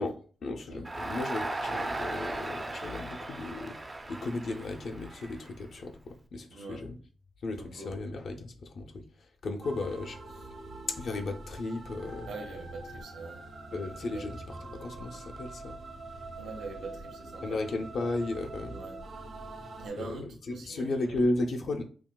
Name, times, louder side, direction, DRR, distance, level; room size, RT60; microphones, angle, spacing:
voice 1, 0.0-3.8 4.1-7.0 7.4-10.5 10.9-12.3 13.7-15.8 17.4-18.8 19.9-21.8, left 2 dB, 55° left, 0.5 m, -35 dB
Crowd, 0.8-6.0, right 2 dB, 20° right, 0.4 m, -37 dB
voice 2, 6.5-6.8 7.6-7.9 12.3-13.4 14.1-14.2 16.4-17.6 18.7-18.9 19.8-21.2, right 3 dB, 85° right, 1.1 m, -43 dB
sound 1, 9.6-19.9, right 2 dB, 65° right, 1.5 m, -44 dB
5.8 x 2.3 x 2.2 m
cardioid pair, 120°, 0 cm